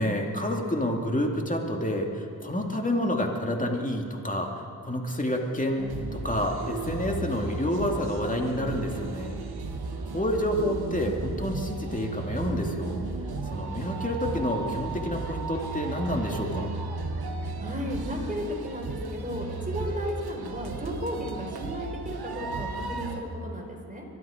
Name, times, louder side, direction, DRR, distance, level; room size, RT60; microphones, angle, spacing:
voice 1, 0.0-9.4 10.1-13.0 13.4-16.7, left 1 dB, 20° left, 1 dB, 2.5 m, -29 dB
sound 1, 5.8-23.2, right 3 dB, 85° right, 1.2 m, -34 dB
voice 2, 17.6-24.1, equal, 20° right, 0 dB, 4.0 m, -34 dB
23.5 x 12.0 x 5.1 m, 2.7 s
cardioid pair, 50°, 37 cm